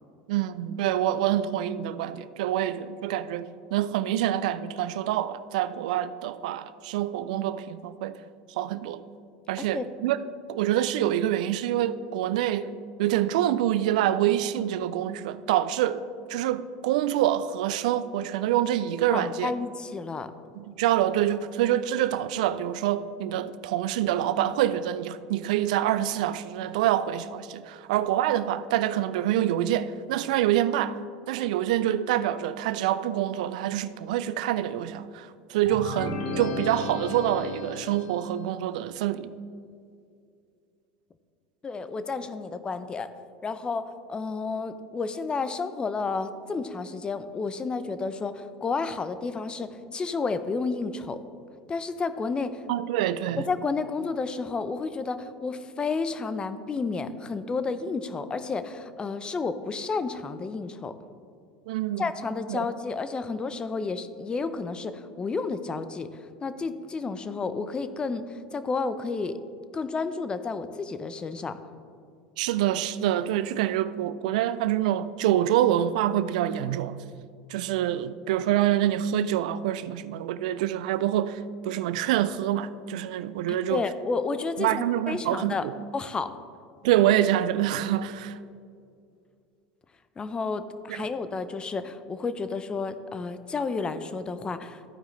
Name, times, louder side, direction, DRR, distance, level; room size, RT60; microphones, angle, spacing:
voice 1, 0.3-8.2 8.6-9.0 9.5-10.2 10.5-16.0 16.3-19.5 20.6-31.0 31.3-39.3 52.7-53.4 61.7-62.1 62.5-62.7 72.4-77.0 77.5-83.8 84.6-85.8 86.8-88.4 90.9-91.1, right 12 dB, 75° right, 0.4 m, -26 dB
voice 2, 19.1-20.3 41.6-43.1 43.4-51.2 51.7-52.6 53.4-60.9 62.0-69.4 69.7-71.6 83.5-85.7 85.9-86.3 90.2-94.8, left 4 dB, 20° left, 0.5 m, -31 dB
sound 1, 35.7-38.5, left 2 dB, 75° left, 1.2 m, -34 dB
14.0 x 4.8 x 3.1 m
hypercardioid pair, 100°, 4 cm